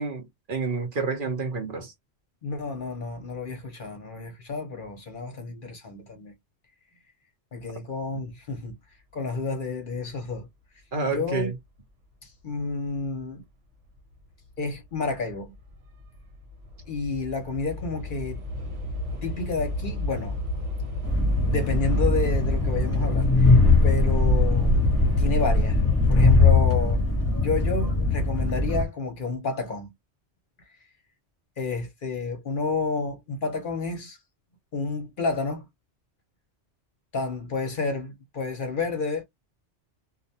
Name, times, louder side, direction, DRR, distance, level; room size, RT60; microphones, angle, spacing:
voice 1, 0.0-1.9 10.9-11.6, right 4 dB, 50° right, 0.8 m, -29 dB
voice 2, 2.4-6.3 7.5-8.7 9.1-10.5 11.0-11.5 12.2-13.4 14.6-15.5 16.9-18.4 19.2-20.4 21.5-25.8 26.1-27.1 27.4-29.9 31.6-34.2 34.7-35.7 37.1-39.2, left 3 dB, 55° left, 0.7 m, -30 dB
Train / Subway metro underground, 13.0-13.1 14.0-14.2 14.5-27.0, left 1 dB, 80° right, 1.2 m, -33 dB
Train, 21.0-28.9, left 3 dB, 15° left, 0.8 m, -20 dB
2.4 x 2.1 x 2.6 m
omnidirectional pair, 1.2 m